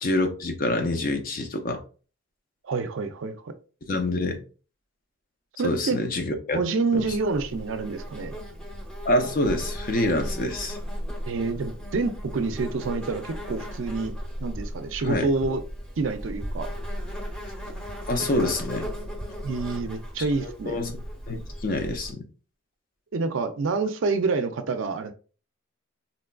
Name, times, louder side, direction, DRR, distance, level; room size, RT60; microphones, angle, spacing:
voice 1, 0.0-1.8 3.9-4.4 5.6-6.6 6.9-7.0 9.0-10.8 15.1-15.3 18.1-18.9 20.4-20.9 21.3-22.2, left 1 dB, 45° left, 0.6 m, -26 dB
voice 2, 2.6-3.5 5.6-6.0 6.5-8.3 11.3-14.1 14.4-15.6 16.0-16.7 19.4-20.8 23.1-25.1, right 4 dB, 70° right, 0.4 m, -27 dB
Insect, 6.9-22.1, equal, 5° left, 0.8 m, -36 dB
3.9 x 2.4 x 2.2 m
head